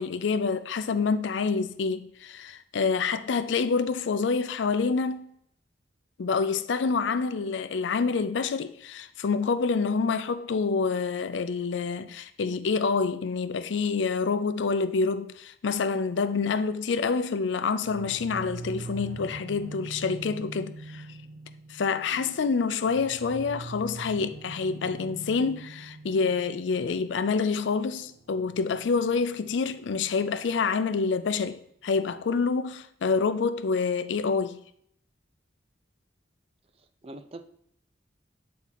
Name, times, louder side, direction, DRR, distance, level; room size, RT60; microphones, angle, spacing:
voice 1, 0.0-5.3 6.2-21.1 21.7-34.6, left 5 dB, 80° left, 0.4 m, -27 dB
sound 1, 17.8-30.6, right 3 dB, 75° right, 0.8 m, -43 dB
voice 2, 36.7-37.4, right 2 dB, 30° right, 0.4 m, -44 dB
7.4 x 4.2 x 4.0 m
head